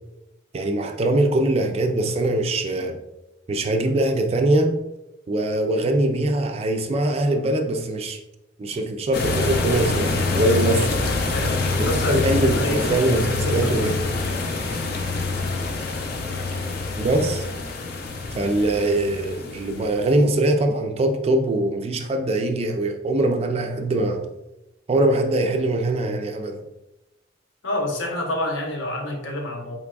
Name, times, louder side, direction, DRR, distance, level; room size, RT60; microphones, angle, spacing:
voice 1, 0.5-3.0 3.5-4.8 5.3-8.2 8.6-10.9 11.8-14.1 17.0-17.5 18.3-24.2 24.9-26.6, right 1 dB, 30° right, 5 dB, 0.3 m, -22 dB
sound 1, 9.1-20.2, left 3 dB, 55° left, 0.5 m, -26 dB
voice 2, 11.3-13.1 13.3-13.9 27.6-29.7, left 1 dB, 75° left, 0 dB, 0.8 m, -28 dB
4.1 x 3.4 x 2.3 m, 0.94 s
head